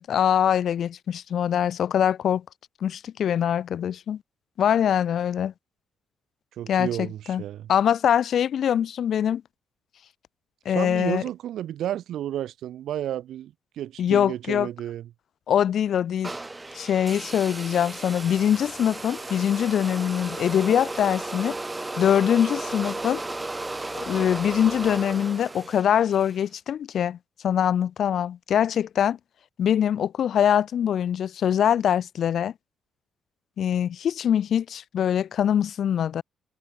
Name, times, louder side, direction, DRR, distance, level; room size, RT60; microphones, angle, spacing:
voice 1, 0.0-2.4 2.8-4.2 4.6-5.5 6.7-7.4 7.7-9.4 10.7-11.2 14.0-14.7 15.5-16.4 16.7-21.6 22.0-23.2 24.0-27.2 27.4-29.2 29.6-32.5 33.6-36.2, left 9 dB, 65° left, 0.4 m, -23 dB
voice 2, 6.6-7.7 10.7-15.1, right 11 dB, 75° right, 1.3 m, -32 dB
sound 1, 16.2-26.4, right 2 dB, 15° right, 0.9 m, -35 dB
cardioid pair, 90°, 0 cm